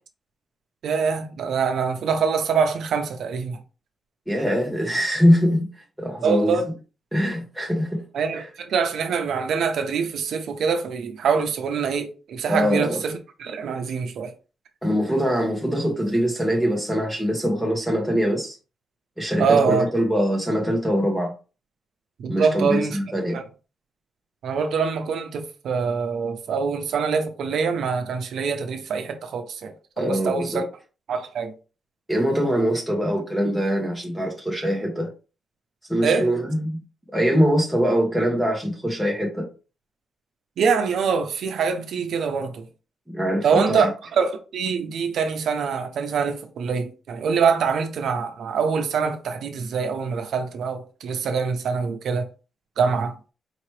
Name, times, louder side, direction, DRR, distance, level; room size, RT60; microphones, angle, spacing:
voice 1, 0.8-3.6 6.2-6.7 8.1-14.3 19.4-19.9 22.2-23.0 23.3-23.4 24.4-30.6 31.1-31.5 36.0-36.3 40.6-42.6 43.4-52.3 52.8-53.1, right 5 dB, 70° right, 0.7 m, -24 dB
voice 2, 4.3-6.6 7.1-8.0 12.5-13.0 14.8-18.6 19.2-21.3 22.3-23.4 30.0-30.6 32.1-35.1 35.9-36.8 37.1-39.5 43.1-43.9, equal, ahead, 0.9 m, -23 dB
4.4 x 2.9 x 3.2 m
wide cardioid pair, 140°, 0 cm